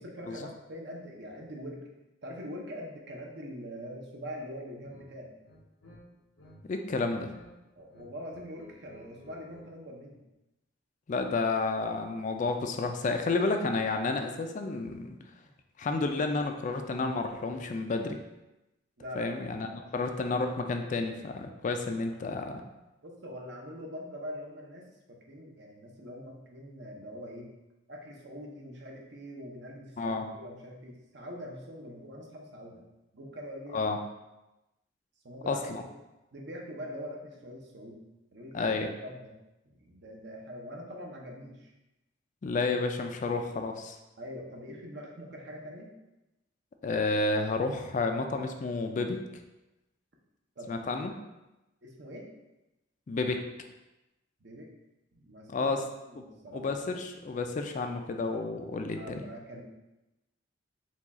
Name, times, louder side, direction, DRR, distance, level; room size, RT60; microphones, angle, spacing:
voice 1, 0.0-1.8 2.2-5.3 7.8-10.2 19.0-19.3 19.7-19.9 23.0-27.5 27.9-32.8 33.1-33.9 35.2-35.8 36.3-38.0 38.3-39.3 39.6-41.7 44.2-45.9 50.6-50.9 51.8-52.3 54.4-54.7 55.1-55.7 56.0-56.6 58.8-59.6, equal, 60° right, 0 dB, 0.8 m, -43 dB
sound 1, 4.8-5.1 5.4-6.6 6.8-7.5 7.8-9.7, left 1 dB, 75° left, 0.7 m, -54 dB
voice 2, 6.7-7.3 11.1-15.2 15.8-18.2 19.2-22.6 30.0-30.2 33.7-34.0 35.5-35.8 38.5-38.9 42.4-44.0 46.8-49.2 50.7-51.1 53.1-53.4 55.5-55.8 56.5-59.2, left 3 dB, 40° left, 5 dB, 0.4 m, -30 dB
4.6 x 2.3 x 4.1 m, 0.98 s
head